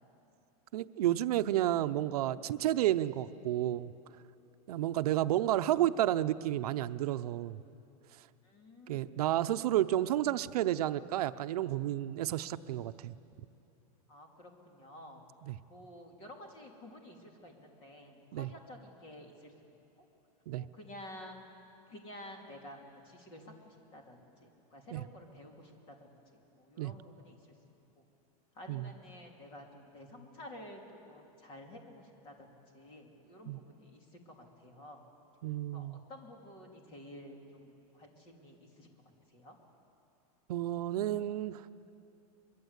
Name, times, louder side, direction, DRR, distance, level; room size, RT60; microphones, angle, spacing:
voice 1, 0.7-3.9 4.7-7.6 8.9-13.1 15.5-15.6 18.3-18.5 20.5-20.6 24.9-25.0 26.8-26.9 28.7-28.9 33.5-33.6 35.4-36.0 40.5-41.7, right 13 dB, 75° right, 11 dB, 0.7 m, -31 dB
voice 2, 8.4-9.2 14.1-15.2 15.7-19.5 20.0-20.1 20.5-21.5 21.9-27.4 28.0-28.1 28.5-35.0 35.7-39.0 39.3-39.6, left 1 dB, 25° left, 2 dB, 2.9 m, -51 dB
24.5 x 22.0 x 8.2 m, 2.7 s
supercardioid pair, 180°, 20 cm